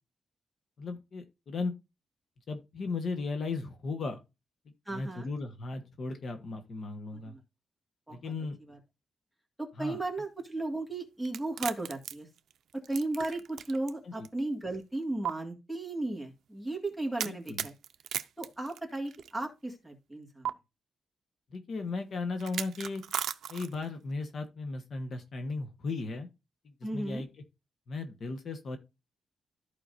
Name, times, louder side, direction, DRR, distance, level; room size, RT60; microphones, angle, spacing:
voice 1, 0.8-1.7 2.5-4.2 4.9-7.3 8.1-8.6 9.8-10.0 14.1-14.3 17.2-17.7 21.5-23.0 23.5-26.3 26.9-27.3 27.9-28.8, left 3 dB, 50° left, 7 dB, 1.2 m, -36 dB
voice 2, 4.9-5.3 7.1-7.4 8.1-8.3 8.7-8.8 9.6-12.3 12.7-17.7 18.4-20.5 26.8-27.2, right 2 dB, ahead, 0 dB, 1.9 m, -35 dB
sound 1, 11.3-13.9 14.2-14.3 15.2-15.3 17.2-19.3 20.4-20.5 22.4-23.9, right 9 dB, 85° right, 0.5 m, -36 dB
14.0 x 4.9 x 2.6 m, 0.25 s
wide cardioid pair, 165°, 0 cm